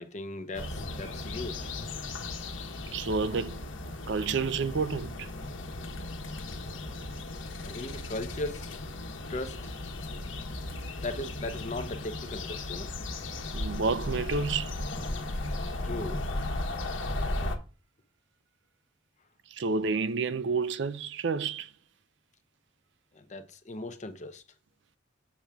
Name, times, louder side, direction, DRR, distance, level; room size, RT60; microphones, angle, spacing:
voice 1, 0.0-1.7 7.6-8.6 9.3-9.6 11.0-12.9 15.8-16.2 23.1-24.4, left 2 dB, 35° left, 0.8 m, -37 dB
sound 1, 0.5-17.6, left 2 dB, 80° left, 1.3 m, -36 dB
voice 2, 2.9-3.6 4.1-5.3 13.5-14.7 19.5-21.7, right 4 dB, 65° right, 0.5 m, -29 dB
7.3 x 7.1 x 3.5 m
head